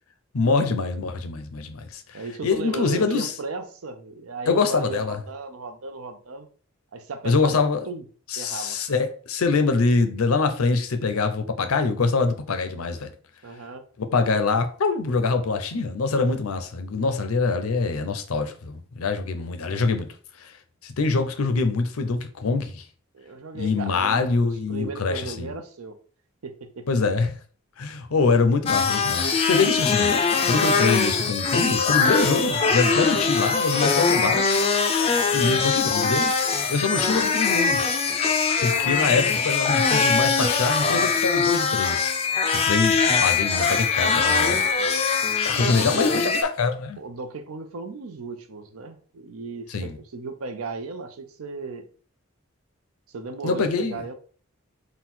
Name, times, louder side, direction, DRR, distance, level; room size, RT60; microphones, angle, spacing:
voice 1, 0.3-3.3 4.5-5.2 7.2-7.8 8.3-13.1 14.0-20.1 20.4-20.5 20.8-22.8 23.5-25.5 26.9-27.3 27.8-30.2 30.5-34.6 35.3-36.3 36.7-37.8 38.6-42.2 42.5-44.6 45.4-47.0 49.7-49.9 53.4-54.0, left 4 dB, 85° left, 0.6 m, -24 dB
voice 2, 2.1-6.5 6.9-7.6 7.9-8.0 8.4-8.8 13.4-13.9 23.1-26.0 26.4-26.9 35.2-35.5 44.8-45.0 45.4-46.3 47.0-51.8 53.1-54.1, right 3 dB, 85° right, 0.6 m, -36 dB
sound 1, 28.7-46.4, left 5 dB, 30° left, 0.3 m, -22 dB
3.8 x 2.2 x 4.3 m
head